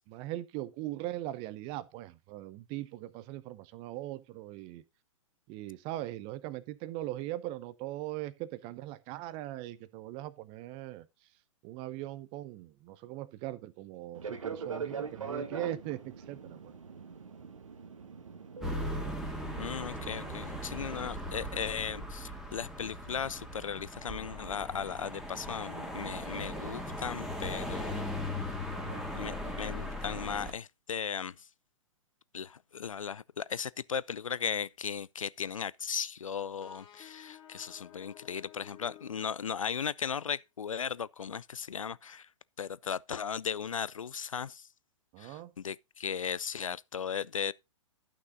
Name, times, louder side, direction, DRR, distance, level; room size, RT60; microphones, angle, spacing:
voice 1, 0.1-4.8 5.5-11.1 11.6-16.6 28.7-29.0 45.1-45.5, right 15 dB, 30° right, 0.7 m, -40 dB
Fixed-wing aircraft airplane, 14.1-20.6, right 5 dB, 75° right, 1.5 m, -42 dB
sound 1, 18.6-30.5, left 1 dB, ahead, 1.9 m, -38 dB
voice 2, 19.6-28.0 29.1-31.3 32.3-42.3 42.6-44.6 45.2-47.5, left 7 dB, 85° left, 0.4 m, -37 dB
sound 2, 36.6-40.1, left 12 dB, 25° left, 1.9 m, -54 dB
11.5 x 6.0 x 3.8 m
figure-of-eight pair, 115°, 17 cm